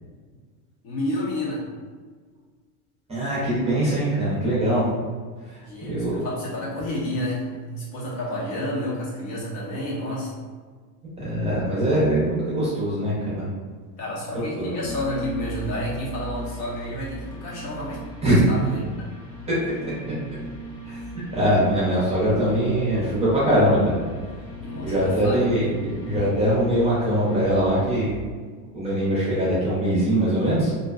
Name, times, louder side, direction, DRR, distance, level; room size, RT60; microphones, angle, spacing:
voice 1, 0.8-1.6 5.6-10.3 14.0-18.0 18.5-19.1 24.6-25.7, left 1 dB, 60° left, -5 dB, 1.0 m, -30 dB
voice 2, 3.1-4.9 5.5-5.6 5.9-6.3 11.2-13.5 14.3-14.7 18.2-18.5 20.8-21.0 21.3-24.0 24.8-28.2 28.7-30.8, right 1 dB, 15° right, -8 dB, 0.6 m, -22 dB
sound 1, 14.8-28.1, right 1 dB, 20° left, 0.8 m, -38 dB
2.5 x 2.2 x 2.3 m, 1.5 s
supercardioid pair, 130°, 48 cm